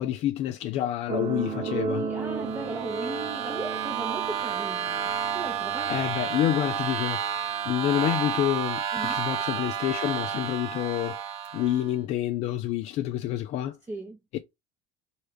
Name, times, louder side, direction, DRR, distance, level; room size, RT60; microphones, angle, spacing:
voice 1, 0.0-2.1 5.9-7.2 7.7-11.2 11.5-13.8 14.3-14.4, left 13 dB, 50° left, 0.4 m, -28 dB
sound 1, 1.1-8.1 9.0-9.1, right 4 dB, 40° right, 1.1 m, -35 dB
voice 2, 1.9-5.1 5.3-6.4 8.9-9.2 13.9-14.2, right 2 dB, 15° right, 0.7 m, -38 dB
sound 2, 2.3-11.9, right 8 dB, 60° right, 0.7 m, -31 dB
3.2 x 2.4 x 3.2 m
hypercardioid pair, 70°, 15 cm